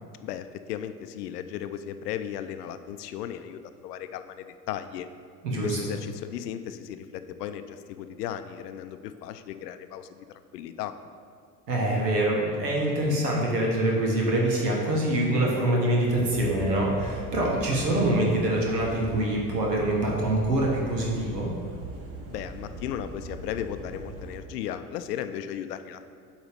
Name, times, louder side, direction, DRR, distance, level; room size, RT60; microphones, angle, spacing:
voice 1, 0.2-5.1 5.6-10.3 10.5-10.9 22.3-26.0, left 10 dB, 80° left, 10 dB, 0.5 m, -36 dB
voice 2, 5.4-5.8 11.7-21.5, right 1 dB, 85° right, -2 dB, 1.3 m, -25 dB
sound 1, 16.0-24.4, right 2 dB, 30° right, 1.1 m, -40 dB
8.1 x 3.2 x 5.1 m, 2.3 s
hypercardioid pair, 70°, 47 cm